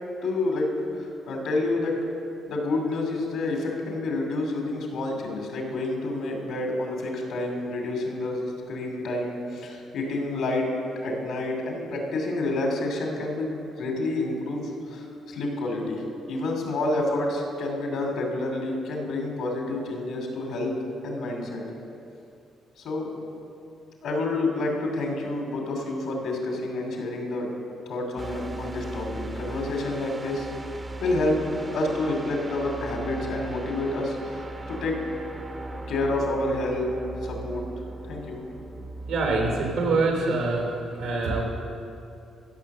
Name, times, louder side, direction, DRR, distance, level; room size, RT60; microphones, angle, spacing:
voice 1, 0.2-1.9 2.5-10.7 11.0-13.5 13.8-20.7 21.0-21.6 22.8-23.1 24.0-27.5 27.9-30.5 31.0-31.4 31.7-35.0 35.9-36.9 37.2-37.6 38.0-38.4, left 2 dB, 75° left, 1 dB, 2.5 m, -28 dB
sound 1, 28.2-40.2, right 2 dB, 25° right, 0.9 m, -38 dB
voice 2, 39.0-41.4, right 3 dB, 85° right, 0 dB, 3.1 m, -25 dB
15.0 x 6.4 x 6.6 m, 2.6 s
cardioid pair, 90°, 0 cm